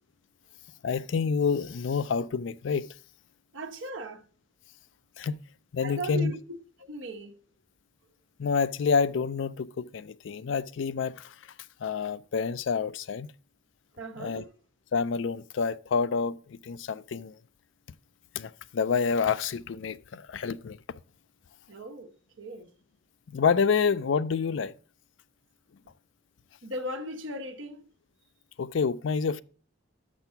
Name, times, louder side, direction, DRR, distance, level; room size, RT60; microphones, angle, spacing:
voice 1, 0.8-2.9 5.2-5.4 5.7-6.3 8.4-11.3 11.8-13.3 14.2-14.4 14.9-17.4 18.3-20.8 23.3-24.7 28.6-29.4, left 5 dB, 70° left, 0.4 m, -28 dB
voice 2, 3.5-4.2 5.8-7.4 14.0-14.5 21.7-22.1 22.4-22.7 26.6-27.8, right 1 dB, 75° right, 1.2 m, -38 dB
6.8 x 6.2 x 5.7 m
head